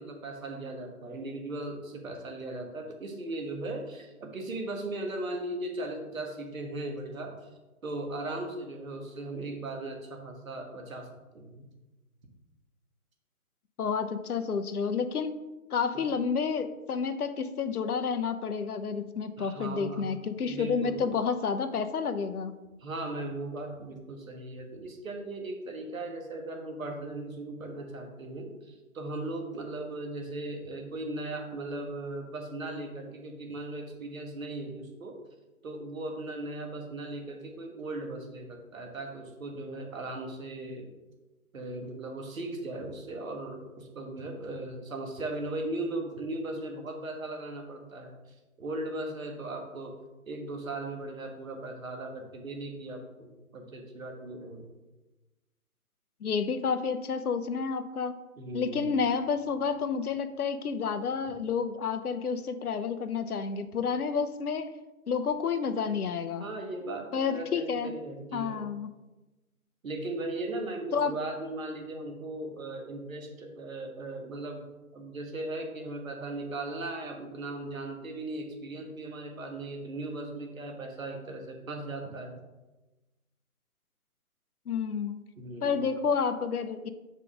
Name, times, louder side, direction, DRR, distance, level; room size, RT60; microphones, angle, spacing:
voice 1, 0.0-7.3 7.8-11.7 15.9-16.0 19.4-20.0 20.4-21.1 22.8-35.2 35.6-40.9 41.5-48.2 48.6-49.9 50.2-54.7 58.4-59.0 66.4-68.6 69.8-74.6 74.9-82.4 85.4-85.9, right 2 dB, 65° right, 3 dB, 1.5 m, -38 dB
voice 2, 13.8-15.4 15.7-22.5 56.2-58.1 58.5-64.7 65.1-66.4 67.1-67.9 68.3-68.9 70.9-71.1 84.7-85.2 85.6-86.9, left 6 dB, 85° left, 11 dB, 0.7 m, -30 dB
6.6 x 5.1 x 3.7 m, 1.1 s
figure-of-eight pair, 150°, 43 cm